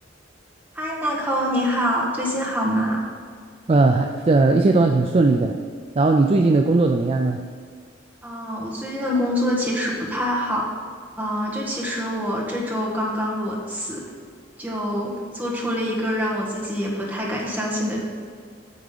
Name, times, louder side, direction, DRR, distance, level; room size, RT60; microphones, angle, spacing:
voice 1, 0.7-3.0 8.2-10.7 11.2-14.0 14.6-18.0, equal, 10° right, -4 dB, 1.5 m, -25 dB
voice 2, 3.7-5.5 6.0-7.4, right 3 dB, 30° right, 4 dB, 0.3 m, -18 dB
9.3 x 3.6 x 6.7 m, 2.1 s
head